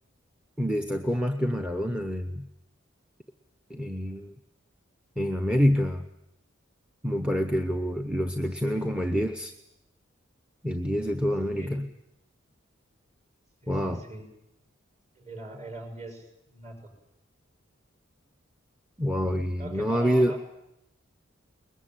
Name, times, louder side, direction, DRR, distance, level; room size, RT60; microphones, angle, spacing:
voice 1, 0.6-2.5 3.7-4.3 5.2-6.1 7.0-9.5 10.6-11.9 13.7-14.0 19.0-20.3, equal, 5° right, 6 dB, 0.8 m, -27 dB
voice 2, 11.6-11.9 13.6-14.3 15.2-16.9 19.6-20.4, right 1 dB, 35° right, 4 dB, 6.4 m, -41 dB
22.0 x 21.0 x 9.1 m, 0.85 s
head